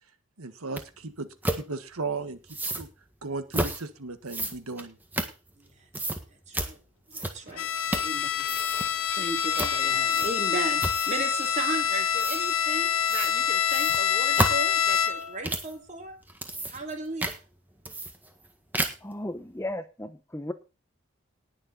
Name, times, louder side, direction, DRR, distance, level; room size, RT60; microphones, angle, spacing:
voice 1, 0.4-2.9 3.2-5.0, right 3 dB, 90° right, 10 dB, 1.5 m, -36 dB
sound 1, 0.8-0.9 1.4-1.6 2.5-2.9 3.5-3.8 4.3-5.7 5.9-6.2 6.5-6.7 7.1-7.5 7.9-8.2 8.4-8.9 9.5-9.8 10.1-10.5 10.8-11.2 12.2-12.4 13.1-13.3 13.7-15.7 16.2-16.9 17.2-17.4 17.8-18.5 18.7-19.1, right 1 dB, 10° right, 1.6 m, -31 dB
voice 2, 6.3-6.8 7.1-7.7 7.9-8.6 9.1-16.2 16.6-17.4, right 2 dB, 35° right, 4 dB, 2.9 m, -36 dB
Bowed string instrument, 7.6-15.4, left 8 dB, 85° left, 1.3 m, -26 dB
voice 3, 19.0-20.5, left 1 dB, 10° left, 10 dB, 0.8 m, -35 dB
19.5 x 6.8 x 4.2 m, 0.30 s
head